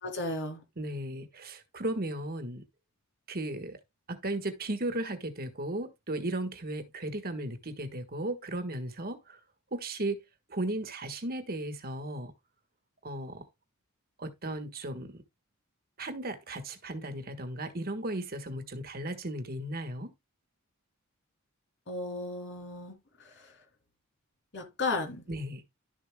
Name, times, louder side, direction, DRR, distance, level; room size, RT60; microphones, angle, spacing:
voice 1, 0.0-0.6 21.9-22.9 24.5-25.2, left 3 dB, 55° left, 3.0 m, -34 dB
voice 2, 0.8-2.6 3.3-3.8 4.1-9.4 9.7-10.2 10.5-12.3 13.0-13.5 14.2-15.2 16.0-20.1 25.3-25.6, right 1 dB, 40° right, 1.5 m, -35 dB
12.0 x 7.1 x 2.2 m
head